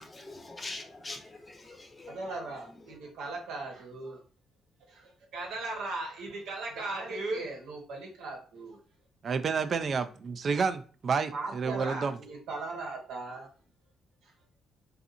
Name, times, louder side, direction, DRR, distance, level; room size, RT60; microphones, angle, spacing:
voice 1, 0.0-2.4, left 2 dB, 25° left, 0.6 m, -43 dB
voice 2, 2.1-4.2 4.8-8.8 11.3-13.5 14.2-14.3, right 2 dB, 85° right, 1.0 m, -38 dB
voice 3, 9.2-12.1, right 5 dB, 50° right, 0.3 m, -30 dB
2.6 x 2.4 x 2.5 m
cardioid pair, 90°, 0 cm